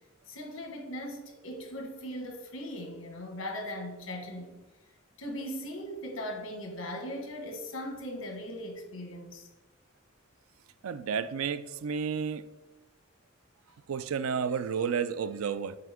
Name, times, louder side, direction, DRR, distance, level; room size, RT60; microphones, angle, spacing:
voice 1, 0.3-4.6 5.2-9.5, equal, 70° left, 1.4 m, -39 dB
voice 2, 10.8-12.4 13.9-15.8, right 6 dB, 85° right, 0.4 m, -31 dB
6.6 x 5.0 x 3.5 m
head